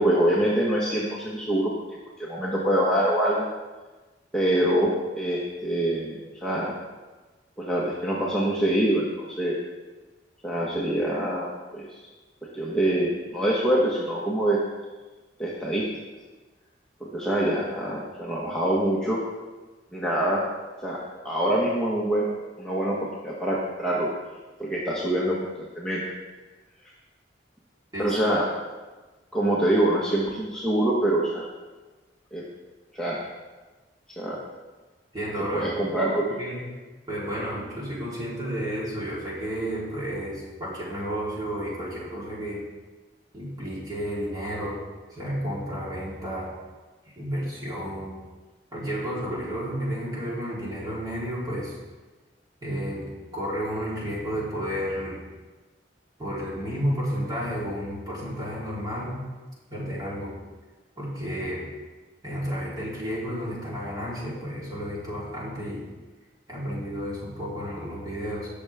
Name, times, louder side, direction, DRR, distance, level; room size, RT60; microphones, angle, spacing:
voice 1, 0.0-3.5 4.3-6.7 7.6-9.5 10.4-12.0 12.5-14.6 15.4-15.8 17.0-19.2 19.9-20.4 20.8-21.0 21.2-22.3 22.6-24.1 24.6-26.0 28.0-28.5 29.3-31.4 32.3-32.4 32.9-33.2 34.2-34.4 35.5-36.4, right 1 dB, 5° left, -7 dB, 1.4 m, -25 dB
voice 2, 35.1-35.7 36.4-36.6 37.1-42.6 43.3-44.8 45.1-46.5 47.2-48.1 48.7-51.8 52.6-53.0 53.3-55.2 56.2-59.2 59.7-60.3 61.0-61.6 62.2-65.8 66.5-68.5, equal, 25° right, -7 dB, 3.9 m, -31 dB
18.0 x 6.9 x 3.6 m, 1.3 s
head